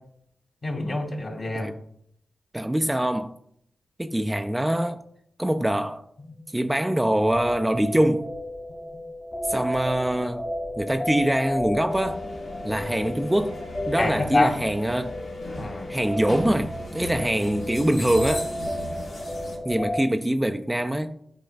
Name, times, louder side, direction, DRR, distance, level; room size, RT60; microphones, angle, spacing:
voice 1, 0.6-1.7 14.0-14.5 15.6-15.9, left 2 dB, 55° left, 2.0 m, -26 dB
voice 2, 2.5-3.3 4.0-5.0 5.4-6.1 6.5-8.3 9.5-12.3 12.6-15.2 15.9-18.5 19.6-21.2, right 1 dB, 15° right, 0.4 m, -24 dB
sound 1, 7.2-20.0, left 1 dB, 35° left, 1.7 m, -33 dB
sound 2, 11.9-19.6, left 1 dB, 90° left, 1.6 m, -37 dB
11.5 x 4.2 x 2.4 m
cardioid pair, 45°, 0 cm